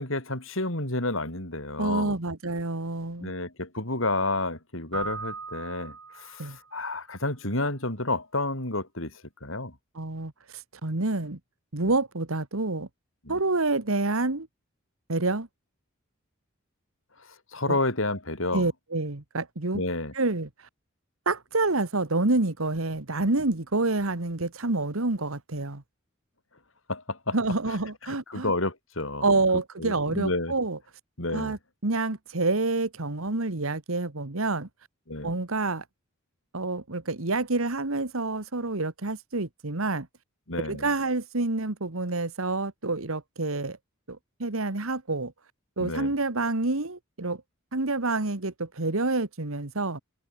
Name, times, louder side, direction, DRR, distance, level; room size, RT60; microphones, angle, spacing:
voice 1, 0.0-2.2 3.2-9.7 11.8-11.9 13.2-13.4 17.5-18.7 19.7-20.1 26.9-27.4 27.7-27.8 28.0-29.4 29.8-30.5 31.2-31.6 35.1-35.3 40.5-40.9 45.8-46.1, left 2 dB, 70° left, 7.5 m, -30 dB
voice 2, 1.8-3.3 6.4-6.6 10.0-11.4 11.7-12.9 13.3-14.5 15.1-15.5 17.7-17.8 18.5-19.8 20.1-20.5 21.3-25.8 27.3-28.5 29.2-30.8 31.3-34.7 35.2-35.8 36.5-40.1 40.6-43.8 44.1-45.3 45.8-47.4 47.7-50.0, right 2 dB, 85° right, 1.8 m, -28 dB
Keyboard (musical), 4.9-6.7, right 5 dB, 65° right, 6.6 m, -39 dB
head